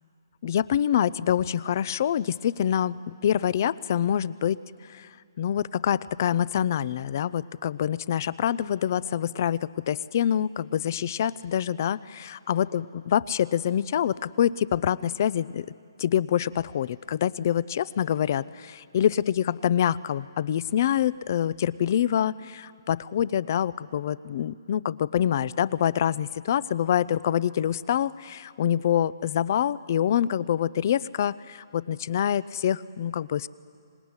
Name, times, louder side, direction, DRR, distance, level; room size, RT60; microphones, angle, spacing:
voice 1, 0.4-4.6 4.8-5.1 5.4-15.7 16.0-33.5, left 9 dB, 45° left, 19 dB, 0.6 m, -26 dB
25.5 x 20.0 x 9.7 m, 2.4 s
hypercardioid pair, 150°, 2 cm